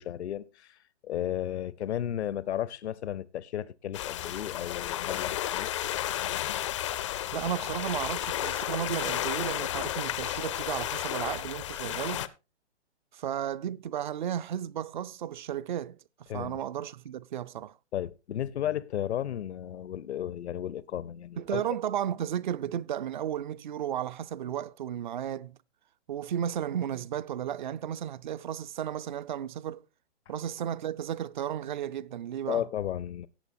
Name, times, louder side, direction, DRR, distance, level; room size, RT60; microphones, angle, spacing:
voice 1, 0.0-5.7 16.3-16.6 17.9-21.6 32.5-33.3, left 11 dB, 70° left, 0.8 m, -34 dB
sound 1, 3.9-12.3, left 12 dB, 30° left, 0.4 m, -32 dB
voice 2, 7.3-12.3 13.1-16.0 16.3-17.7 21.4-25.6 26.1-29.8 30.3-32.6, right 10 dB, 45° right, 0.5 m, -34 dB
17.5 x 8.1 x 2.7 m
hypercardioid pair, 145°, 34 cm